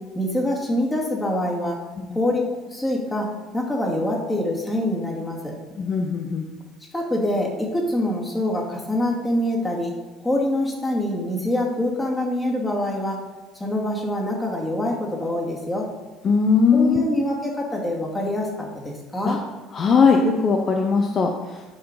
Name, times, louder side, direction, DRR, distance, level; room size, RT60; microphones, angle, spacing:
voice 1, 0.1-1.8 2.1-2.4 2.7-5.5 6.9-9.9 10.2-13.2 13.5-15.9 16.7-19.4, left 1 dB, 15° left, -2 dB, 2.3 m, -25 dB
voice 2, 5.8-6.5 16.2-17.1 19.2-19.4 19.7-21.7, left 5 dB, 40° left, 3 dB, 0.8 m, -19 dB
11.0 x 4.8 x 4.0 m, 1.3 s
supercardioid pair, 85°, 0 cm